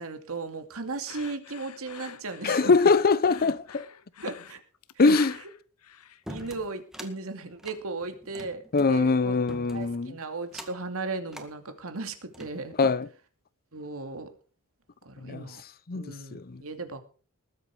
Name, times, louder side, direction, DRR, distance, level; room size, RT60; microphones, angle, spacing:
voice 1, 0.0-2.7 4.2-4.6 6.3-8.6 8.9-9.4 9.7-12.7 13.7-14.3 15.0-15.6 15.9-17.0, right 3 dB, 70° right, 2.5 m, -36 dB
sound 1, 1.1-6.6, left 7 dB, 80° left, 0.9 m, -44 dB
voice 2, 2.4-3.8 5.0-5.4 8.7-10.2 12.8-13.1 15.2-15.5 15.9-16.6, left 4 dB, 45° left, 0.6 m, -23 dB
sound 2, 6.3-7.1 7.6-8.9 9.5-10.0 10.5-10.9 11.3-11.5 12.1-13.0, equal, ahead, 2.0 m, -43 dB
20.5 x 8.3 x 4.7 m
head